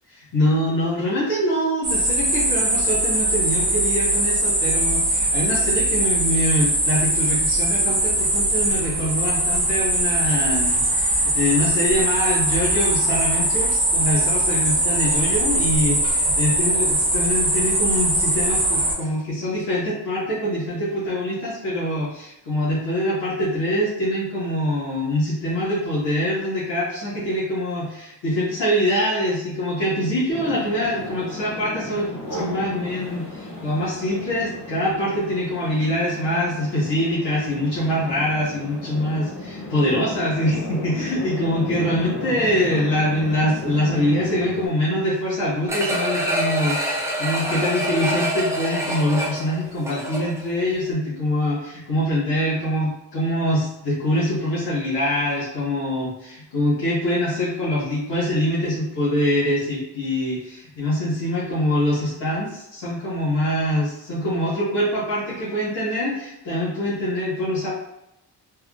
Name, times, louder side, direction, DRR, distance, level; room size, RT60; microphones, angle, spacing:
voice 1, 0.3-67.7, left 1 dB, 85° left, -9 dB, 1.3 m, -24 dB
sound 1, 1.8-18.9, right 1 dB, 35° right, 1.0 m, -21 dB
sound 2, 30.3-44.7, left 2 dB, 40° left, 0.7 m, -34 dB
sound 3, 45.7-50.5 50.9-51.0, equal, 10° right, 0.4 m, -26 dB
3.5 x 2.2 x 2.4 m, 0.87 s
wide cardioid pair, 180°, 40 cm